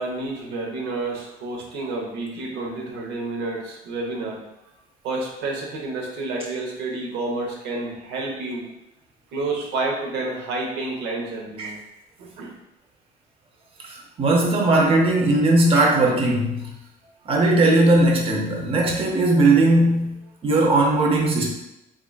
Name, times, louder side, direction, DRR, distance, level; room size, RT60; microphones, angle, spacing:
voice 1, 0.0-4.4 5.0-8.7 9.3-11.8 12.4-12.5, right 2 dB, 85° right, -1 dB, 0.9 m, -29 dB
voice 2, 13.8-16.7 17.3-20.2 20.4-21.5, right 2 dB, 35° right, -1 dB, 0.7 m, -18 dB
3.7 x 3.6 x 2.3 m, 0.88 s
cardioid pair, 110°, 17 cm